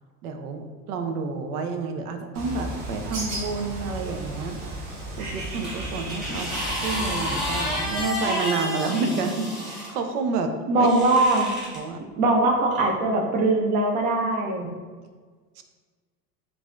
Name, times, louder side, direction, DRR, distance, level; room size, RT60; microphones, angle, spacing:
voice 1, 0.2-4.6 5.2-10.9 11.7-12.0 15.6-15.7, right 4 dB, 70° right, 6 dB, 0.6 m, -29 dB
Bird, 2.3-8.0, right 1 dB, 40° right, 1.1 m, -34 dB
sound 1, 5.6-9.9 10.8-11.8 12.7-12.9, equal, ahead, 1.2 m, -30 dB
voice 2, 10.7-11.5 12.2-14.7, right 2 dB, 20° right, 2 dB, 0.3 m, -21 dB
4.6 x 2.6 x 2.3 m, 1.5 s
hypercardioid pair, 85°, 48 cm